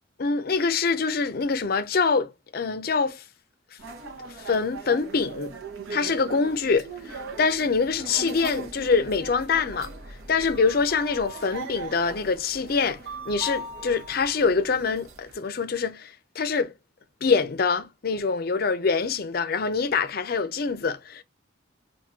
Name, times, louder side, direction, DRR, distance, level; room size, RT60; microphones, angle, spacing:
voice 1, 0.2-3.2 4.3-5.5 5.9-9.9 10.3-13.0 13.3-16.7 17.2-21.2, left 4 dB, 50° left, 0.5 m, -25 dB
sound 1, 3.8-15.3, right 2 dB, 80° right, 1.0 m, -39 dB
3.6 x 2.6 x 2.6 m
head